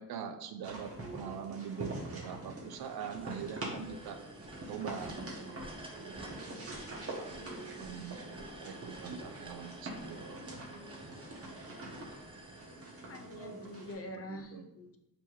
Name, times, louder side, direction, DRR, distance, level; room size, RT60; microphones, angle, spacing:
voice 1, 0.0-4.2 4.7-5.2 7.2-7.4 7.8-8.2 8.6-10.2 14.1-14.7, right 7 dB, 80° right, 7 dB, 0.6 m, -43 dB
sound 1, 0.6-13.9, right 2 dB, 40° right, 1.2 m, -44 dB
sound 2, 1.9-13.9, right 1 dB, 15° right, 0.5 m, -52 dB
voice 2, 13.0-15.0, left 2 dB, 40° left, 6 dB, 0.5 m, -46 dB
3.5 x 2.9 x 4.6 m, 0.85 s
wide cardioid pair, 125°, 36 cm